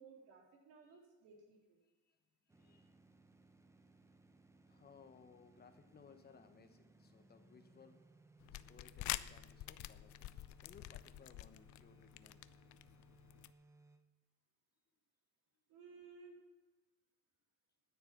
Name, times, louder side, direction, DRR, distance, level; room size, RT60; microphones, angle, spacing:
voice 1, 0.0-1.8 15.7-16.4, right 4 dB, 75° right, -1 dB, 3.8 m, -58 dB
voice 2, 1.8-2.2 2.4-3.0 4.7-8.1 8.5-12.5 15.5-15.6, left 6 dB, 30° left, 7 dB, 1.0 m, -63 dB
sound 1, 2.5-14.0, right 2 dB, 10° right, 0.7 m, -66 dB
sound 2, 8.4-13.5, left 15 dB, 60° left, 0.5 m, -47 dB
9.7 x 9.6 x 7.2 m, 1.1 s
cardioid pair, 125°, 33 cm